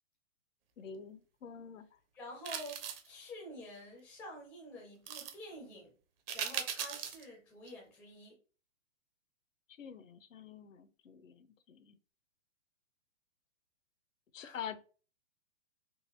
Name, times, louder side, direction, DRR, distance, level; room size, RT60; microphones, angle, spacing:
voice 1, 0.8-1.9 9.8-12.0 14.3-14.8, left 8 dB, 85° left, 0.7 m, -47 dB
voice 2, 2.1-5.9 6.3-8.4 14.4-14.6, left 1 dB, 5° left, 0.4 m, -49 dB
sound 1, 2.4-3.1 5.1-5.3 6.3-7.2 7.7-7.8, right 8 dB, 50° right, 0.7 m, -39 dB
3.9 x 2.6 x 2.8 m
hypercardioid pair, 140°, 38 cm